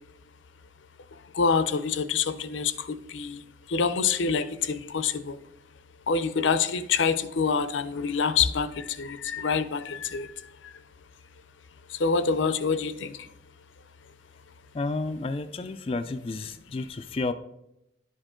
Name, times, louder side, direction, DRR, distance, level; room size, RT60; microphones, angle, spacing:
voice 1, 1.3-3.4 3.7-5.4 6.1-10.3 12.0-13.2, left 5 dB, 85° left, 13 dB, 0.6 m, -26 dB
voice 2, 14.7-17.3, left 3 dB, 30° left, 8 dB, 0.3 m, -31 dB
11.0 x 5.1 x 3.7 m, 0.84 s
head